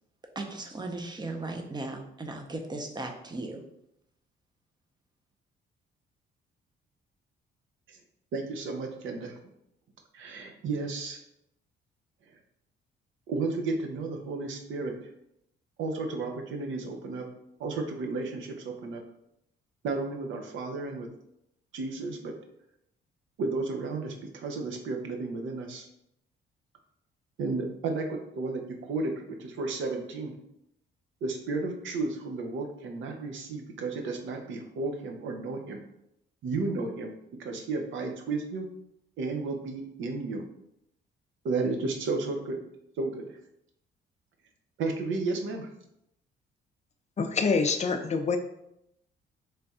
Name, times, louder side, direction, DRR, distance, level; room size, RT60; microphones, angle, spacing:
voice 1, 0.3-3.6, right 2 dB, 20° right, 4 dB, 0.6 m, -37 dB
voice 2, 8.3-9.4 10.1-11.2 13.3-15.0 15.8-17.3 17.6-19.0 19.8-21.1 21.7-22.3 23.4-25.9 27.4-30.4 31.2-35.8 36.4-37.1 37.4-38.7 39.2-40.4 41.4-42.6 43.0-43.3 44.8-45.7, right 3 dB, 75° right, 3 dB, 0.7 m, -33 dB
voice 3, 47.2-48.4, left 4 dB, 35° left, 7 dB, 0.4 m, -26 dB
3.3 x 2.3 x 4.1 m, 0.79 s
cardioid pair, 90°, 20 cm